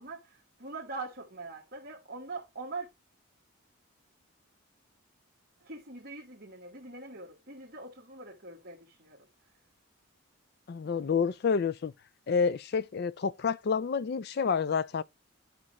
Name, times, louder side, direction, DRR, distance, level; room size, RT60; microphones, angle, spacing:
voice 1, 0.0-2.9 5.6-9.3 11.0-11.1, right 3 dB, 45° right, 1.4 m, -43 dB
voice 2, 10.7-11.9 12.3-15.0, left 5 dB, 45° left, 0.4 m, -29 dB
11.0 x 5.3 x 3.0 m
head